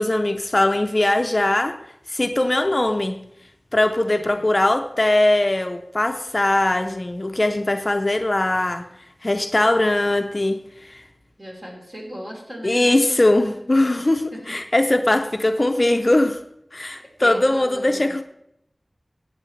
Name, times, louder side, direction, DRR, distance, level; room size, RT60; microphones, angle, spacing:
voice 1, 0.0-1.8 2.1-3.3 3.7-8.9 9.2-11.0 12.6-16.4 16.7-18.2, left 1 dB, 40° left, 7 dB, 0.6 m, -20 dB
voice 2, 9.6-10.0 11.4-13.5 14.0-14.5 17.2-18.2, equal, 35° right, -2 dB, 3.6 m, -38 dB
15.0 x 8.8 x 3.2 m, 0.77 s
wide cardioid pair, 60°, 0 cm